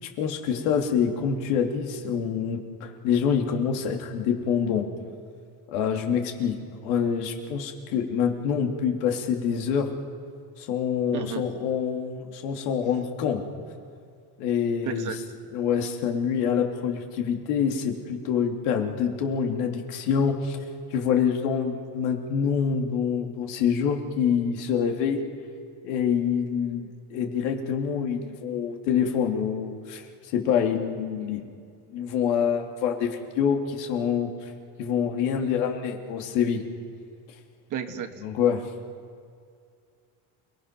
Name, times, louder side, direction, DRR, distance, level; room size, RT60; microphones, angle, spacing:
voice 1, 0.0-4.9 5.7-6.6 6.8-9.9 10.6-13.4 14.4-15.1 15.5-20.6 20.9-25.2 25.8-31.4 31.9-34.5 34.8-36.6 38.2-38.6, left 7 dB, 80° left, 2 dB, 2.8 m, -26 dB
voice 2, 37.7-38.1, right 8 dB, 45° right, 7 dB, 1.7 m, -31 dB
29.0 x 19.0 x 6.0 m, 2.2 s
supercardioid pair, 120°, 43 cm